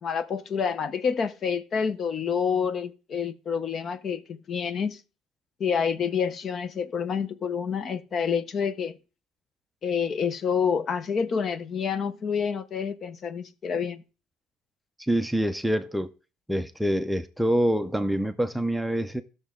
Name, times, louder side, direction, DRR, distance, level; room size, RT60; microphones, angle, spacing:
voice 1, 0.0-5.0 5.6-9.0 9.8-14.0, left 6 dB, 40° left, 0.7 m, -28 dB
voice 2, 15.0-16.1 16.5-19.2, equal, ahead, 0.5 m, -26 dB
14.5 x 6.5 x 3.7 m
cardioid pair, 125°, 0 cm